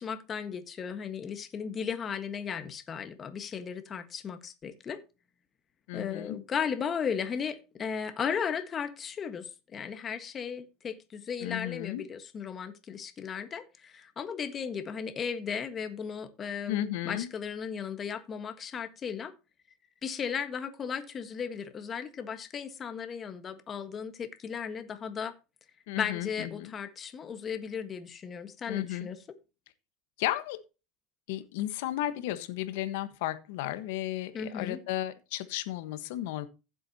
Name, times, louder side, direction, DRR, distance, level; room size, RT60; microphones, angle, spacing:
voice 1, 0.0-5.0 5.9-19.3 20.0-25.3 26.0-29.2 34.3-34.8, left 7 dB, 30° left, 1.5 m, -36 dB
voice 2, 5.9-6.4 11.4-12.0 16.7-17.3 25.9-26.7 28.7-29.1 30.2-30.6 31.3-36.5, left 14 dB, 80° left, 1.3 m, -34 dB
15.0 x 7.7 x 2.9 m
supercardioid pair, 130°, 0 cm